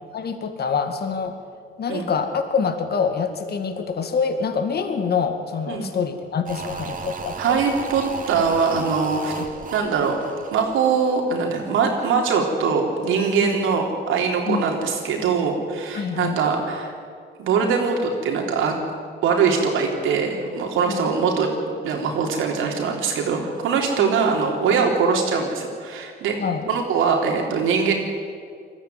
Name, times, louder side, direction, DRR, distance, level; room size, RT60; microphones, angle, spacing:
voice 1, 0.1-1.4 1.8-7.5 13.4-13.6 14.5-14.7 15.9-16.4 20.9-21.1 24.0-24.1 26.4-26.7, left 5 dB, 55° left, 7 dB, 2.1 m, -25 dB
sound 1, 6.5-11.6 11.9-12.0, right 4 dB, 40° right, 2.6 m, -35 dB
voice 2, 7.4-9.3 9.7-16.9 17.4-18.8 19.2-21.5 21.8-26.4 26.7-27.9, right 5 dB, 90° right, 1 dB, 3.7 m, -22 dB
20.5 x 14.0 x 9.4 m, 2.2 s
cardioid pair, 90°, 20 cm